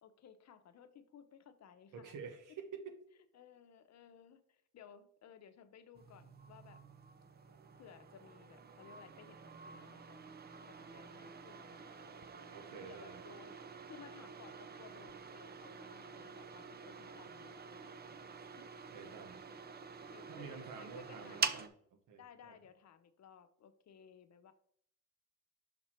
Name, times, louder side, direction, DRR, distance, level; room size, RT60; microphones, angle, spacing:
voice 1, 0.0-2.2 3.2-6.8 7.8-10.2 10.7-18.2 18.6-18.7 19.2-21.5 22.2-24.5, left 8 dB, 60° left, 10 dB, 0.8 m, -59 dB
voice 2, 1.9-3.0 12.5-13.2 18.9-19.4 20.3-21.7 22.1-22.5, right 6 dB, 90° right, 7 dB, 1.1 m, -49 dB
sound 1, 6.0-21.7, right 5 dB, 35° right, 0.5 m, -47 dB
5.9 x 4.4 x 4.4 m, 0.64 s
cardioid pair, 110°, 30 cm